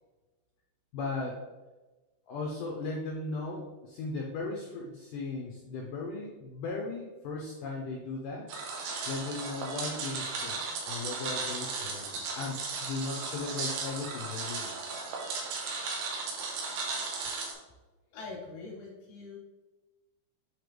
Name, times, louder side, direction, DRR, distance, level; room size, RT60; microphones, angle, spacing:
voice 1, 0.9-1.4 2.3-8.5 9.1-14.7, left 3 dB, 90° left, -1 dB, 1.8 m, -37 dB
sound 1, 8.5-17.5, right 4 dB, 75° right, 3.1 m, -36 dB
voice 2, 18.1-19.4, left 3 dB, 65° left, -4 dB, 3.2 m, -43 dB
8.2 x 4.1 x 3.3 m, 1.2 s
omnidirectional pair, 4.8 m